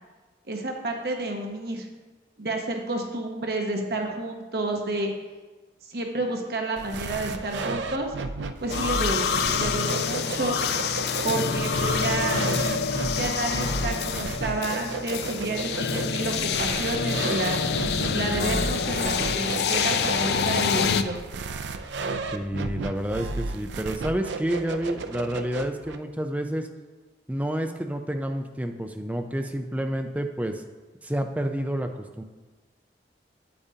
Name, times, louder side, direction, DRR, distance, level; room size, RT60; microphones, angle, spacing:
voice 1, 0.5-1.9 2.4-5.1 5.9-8.1 8.6-10.6 11.2-12.5 13.2-17.6 18.1-21.2, right 2 dB, 60° right, 2 dB, 0.9 m, -30 dB
sound 1, 6.8-26.0, right 3 dB, 85° right, 0.4 m, -34 dB
sound 2, 8.7-21.0, left 5 dB, 70° left, 0.4 m, -27 dB
voice 2, 22.3-26.7 27.3-30.6 31.0-32.2, right 1 dB, 10° right, 5 dB, 0.4 m, -29 dB
8.6 x 8.6 x 2.8 m, 1.3 s
head